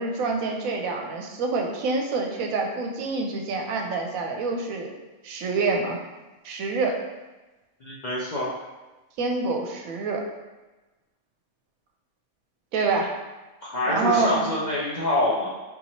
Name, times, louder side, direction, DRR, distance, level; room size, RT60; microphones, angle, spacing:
voice 1, 0.0-4.9 5.2-6.0 6.4-7.0 9.2-10.2 12.7-13.1 13.9-14.5, right 3 dB, 85° right, 2 dB, 1.0 m, -26 dB
voice 2, 7.8-8.5 13.7-15.5, left 1 dB, 55° left, -8 dB, 0.5 m, -25 dB
4.0 x 2.9 x 2.8 m, 1.1 s
omnidirectional pair, 1.4 m